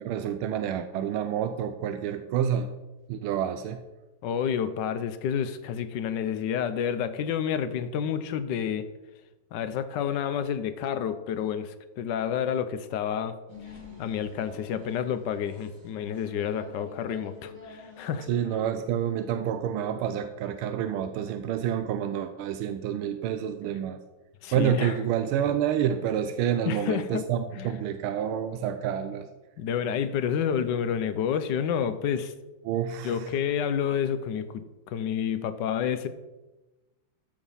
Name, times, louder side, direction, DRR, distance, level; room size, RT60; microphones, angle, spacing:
voice 1, 0.0-2.7 3.1-3.8 18.3-24.0 24.5-29.3 32.6-33.3, right 9 dB, 85° right, 9 dB, 1.5 m, -28 dB
voice 2, 4.2-8.8 9.5-13.4 14.0-18.3 24.4-24.9 26.7-27.2 27.6-27.7 29.6-32.3 33.0-36.1, left 8 dB, 65° left, 11 dB, 1.2 m, -29 dB
sound 1, 13.5-19.0, left 3 dB, 40° right, 2.7 m, -47 dB
13.5 x 5.1 x 5.5 m, 1.1 s
omnidirectional pair, 2.3 m